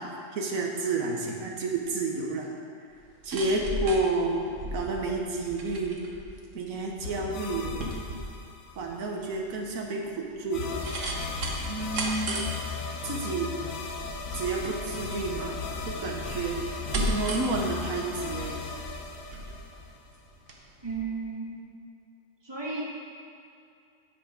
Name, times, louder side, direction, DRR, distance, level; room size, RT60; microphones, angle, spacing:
voice 1, 0.0-2.5 3.2-6.0 6.5-7.8 8.8-10.8 11.7-12.4 13.0-13.5 14.3-15.6 15.9-16.6 17.0-18.6, right 3 dB, 90° right, 0 dB, 1.5 m, -30 dB
sound 1, 2.9-20.6 20.9-21.0, right 1 dB, 65° right, 1.4 m, -37 dB
sound 2, 7.0-8.9 10.5-20.3, left 5 dB, 80° left, 1.3 m, -37 dB
voice 2, 20.8-21.7 22.4-22.8, right 4 dB, 20° right, -5 dB, 1.9 m, -34 dB
9.6 x 7.4 x 5.1 m, 2.5 s
omnidirectional pair, 1.4 m